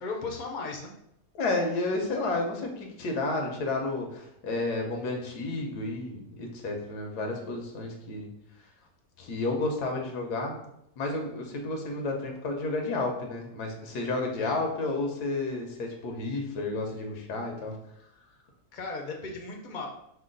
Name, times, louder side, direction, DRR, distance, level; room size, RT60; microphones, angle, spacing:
voice 1, 0.0-0.9 14.4-14.6 18.7-20.0, left 3 dB, 55° left, 1 dB, 0.5 m, -36 dB
voice 2, 1.3-8.3 9.2-10.5 11.0-17.8, left 2 dB, 90° left, 2 dB, 1.4 m, -31 dB
5.5 x 2.2 x 3.8 m, 0.76 s
omnidirectional pair, 1.6 m